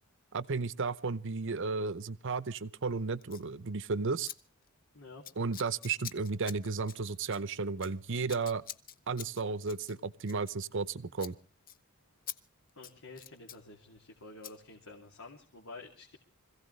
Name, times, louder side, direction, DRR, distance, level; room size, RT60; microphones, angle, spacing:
voice 1, 0.3-4.3 5.4-8.6 9.1-11.4, right 4 dB, 60° right, 16 dB, 0.8 m, -34 dB
Scissors, 3.2-3.5 4.2-4.4 4.6-4.9 5.2-10.9 11.2-11.4 11.7-11.8 12.3-12.4 12.7-13.6 14.4-14.6, left 9 dB, 45° left, 0.8 m, -46 dB
voice 2, 12.7-16.2, left 3 dB, 80° left, -1 dB, 2.7 m, -50 dB
25.5 x 16.0 x 3.2 m, 0.37 s
head